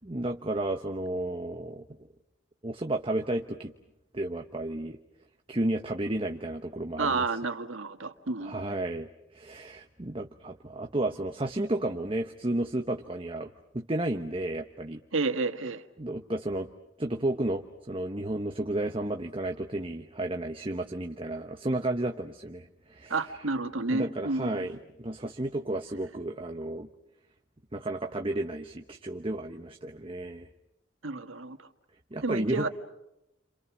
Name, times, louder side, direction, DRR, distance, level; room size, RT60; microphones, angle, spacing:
voice 1, 0.0-1.8 2.6-3.7 4.1-5.0 5.5-7.3 8.5-9.1 9.3-15.0 16.0-16.7 17.0-23.2 23.9-26.9 27.7-30.5 32.1-32.7, right 1 dB, 25° right, 4 dB, 1.1 m, -32 dB
voice 2, 7.0-8.6 15.1-15.8 23.1-24.8 31.0-31.6 32.2-32.7, right 3 dB, 85° right, 7 dB, 1.7 m, -30 dB
30.0 x 27.5 x 6.1 m, 0.87 s
head